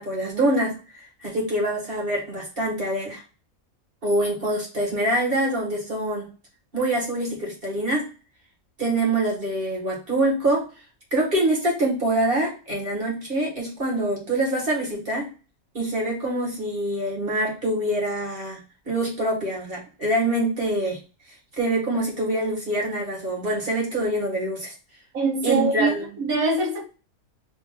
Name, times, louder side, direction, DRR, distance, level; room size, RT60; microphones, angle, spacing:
voice 1, 0.0-3.2 4.0-6.3 6.7-8.1 8.8-10.7 11.1-15.3 15.7-21.0 21.6-24.7 25.4-26.0, right 1 dB, 40° right, 2.0 m, -25 dB
voice 2, 25.1-26.9, right 3 dB, 85° right, 1.6 m, -24 dB
4.1 x 2.9 x 3.7 m
omnidirectional pair, 1.5 m